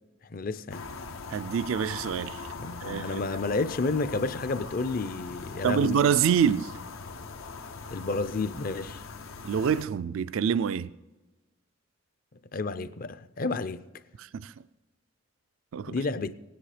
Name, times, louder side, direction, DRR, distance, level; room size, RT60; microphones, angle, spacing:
voice 1, 0.3-0.8 2.6-6.0 7.9-9.0 12.5-13.8 15.9-16.3, left 3 dB, 45° left, 0.5 m, -30 dB
sound 1, 0.7-9.8, left 4 dB, 85° left, 0.8 m, -41 dB
voice 2, 1.3-2.5 2.8-3.2 5.6-6.7 9.4-10.9 14.2-14.5 15.7-16.0, right 7 dB, 80° right, 0.4 m, -26 dB
16.5 x 10.0 x 4.9 m
head